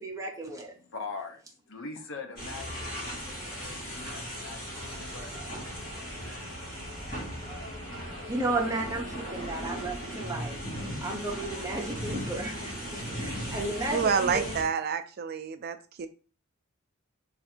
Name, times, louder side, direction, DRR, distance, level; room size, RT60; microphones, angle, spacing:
voice 1, 0.0-0.7 8.3-10.6 11.0-12.7 13.1-14.6, right 2 dB, 15° right, 0.7 m, -33 dB
voice 2, 0.7-6.6, left 4 dB, 60° left, 0.7 m, -43 dB
sound 1, 2.4-14.6, equal, 40° left, 1.5 m, -37 dB
sound 2, 4.7-9.9, left 1 dB, 20° left, 2.1 m, -47 dB
voice 3, 13.9-16.1, right 6 dB, 45° right, 0.3 m, -28 dB
3.4 x 2.5 x 4.2 m
head